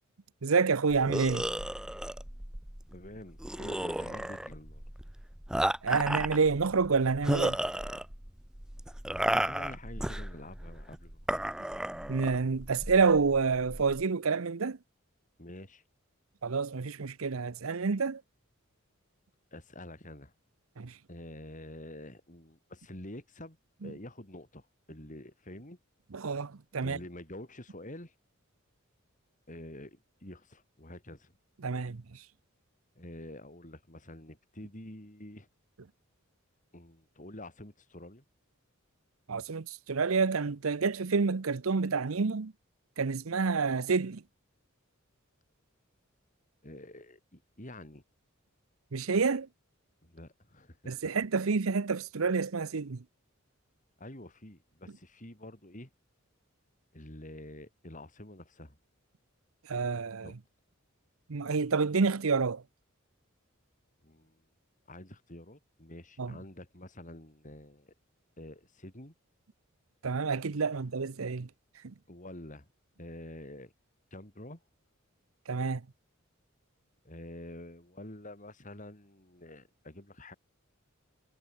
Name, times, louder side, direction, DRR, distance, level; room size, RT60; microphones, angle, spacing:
voice 1, 0.4-1.5 5.8-7.6 12.1-14.8 16.4-18.2 20.8-20.9 23.8-23.9 26.1-27.0 31.6-32.0 39.3-42.5 43.0-44.2 48.9-49.5 50.9-53.0 59.7-60.3 61.3-62.6 66.2-66.3 70.0-71.5 75.5-75.8, right 4 dB, 80° right, 0.8 m, -28 dB
sound 1, 0.9-14.0, right 1 dB, 5° right, 0.3 m, -34 dB
voice 2, 2.9-4.8 9.1-11.3 15.4-15.8 19.5-20.3 21.1-25.8 26.8-28.1 29.5-31.3 33.0-35.5 36.7-38.2 46.6-48.0 50.0-50.9 54.0-55.9 56.9-58.8 60.2-60.4 64.0-64.4 64.9-67.9 68.4-69.1 72.1-72.7 73.0-73.7 74.1-74.6 77.0-80.4, left 1 dB, 40° left, 5.7 m, -47 dB
head